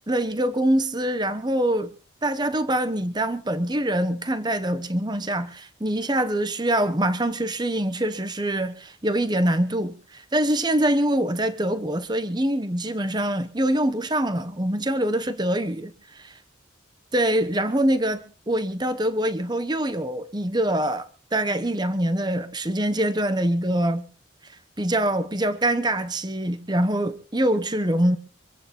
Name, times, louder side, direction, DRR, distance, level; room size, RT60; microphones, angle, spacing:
voice 1, 0.1-1.9 2.2-15.9 16.2-16.3 17.1-24.1 24.8-28.2, right 1 dB, 20° right, 1.1 m, -24 dB
25.5 x 8.8 x 4.4 m
head